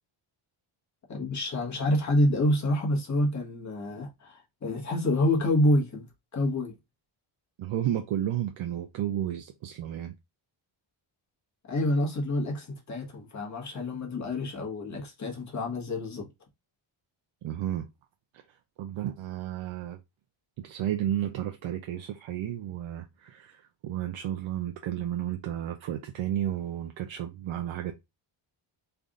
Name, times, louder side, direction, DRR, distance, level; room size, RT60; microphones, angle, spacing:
voice 1, 1.1-6.0 6.3-6.7 11.7-16.3, left 1 dB, 35° left, 1.3 m, -27 dB
voice 2, 7.6-10.1 17.4-17.9 18.8-20.0 20.6-27.9, right 11 dB, 70° right, 0.6 m, -32 dB
3.3 x 2.5 x 3.7 m
wide cardioid pair, 165°, 49 cm